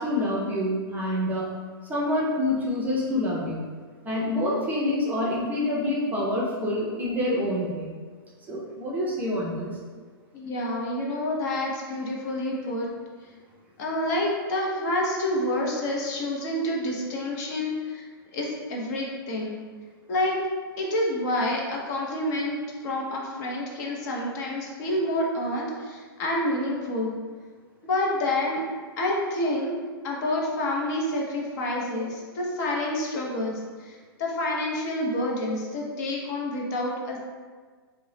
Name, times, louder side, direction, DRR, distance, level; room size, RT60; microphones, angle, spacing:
voice 1, 0.0-1.5 1.9-3.6 4.0-7.9 8.5-9.7, left 1 dB, 15° right, -5 dB, 0.5 m, -27 dB
voice 2, 10.3-12.9 13.8-18.0 18.3-19.6 20.1-20.4 20.8-22.6 22.8-27.1 27.8-28.6 29.0-29.7 30.0-33.5 33.8-37.2, left 1 dB, 45° left, -2 dB, 0.6 m, -28 dB
2.6 x 2.0 x 3.1 m, 1.5 s
hypercardioid pair, 120°, 13 cm